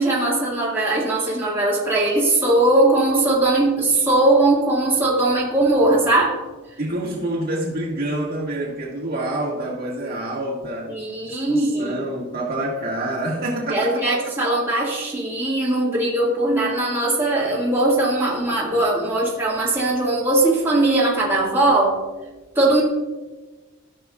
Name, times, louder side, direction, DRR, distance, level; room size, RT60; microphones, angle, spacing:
voice 1, 0.0-6.3 10.9-11.9 13.7-22.0 22.6-22.8, right 2 dB, 10° right, -6 dB, 2.0 m, -19 dB
voice 2, 6.8-10.9 11.2-14.2, right 1 dB, 45° right, -4 dB, 1.9 m, -27 dB
15.5 x 6.0 x 2.4 m, 1.2 s
head